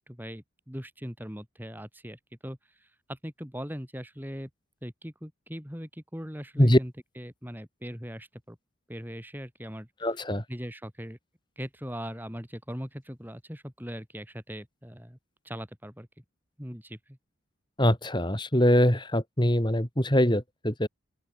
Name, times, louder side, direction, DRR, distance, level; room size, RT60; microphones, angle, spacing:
voice 1, 0.0-2.6 3.1-4.5 4.8-8.6 8.9-9.9 10.5-11.2 11.6-15.2 15.4-16.1 16.6-17.2, equal, 10° right, 6.4 m, -40 dB
voice 2, 10.0-10.4 17.8-20.9, equal, 20° left, 3.8 m, -23 dB
open air
head